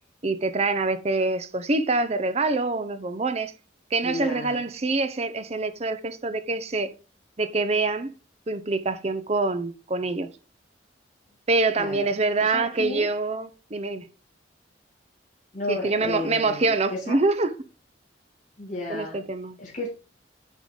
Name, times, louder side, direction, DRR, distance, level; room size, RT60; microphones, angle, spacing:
voice 1, 0.2-3.5 3.9-6.9 7.4-8.1 8.5-10.3 11.5-14.1 15.7-17.5 18.9-19.6, right 3 dB, 35° right, 0.6 m, -25 dB
voice 2, 4.0-4.6 11.8-12.1 12.4-13.1 15.5-17.2 18.6-19.2 19.6-19.9, left 2 dB, 40° left, 2.0 m, -33 dB
9.2 x 3.7 x 4.8 m
head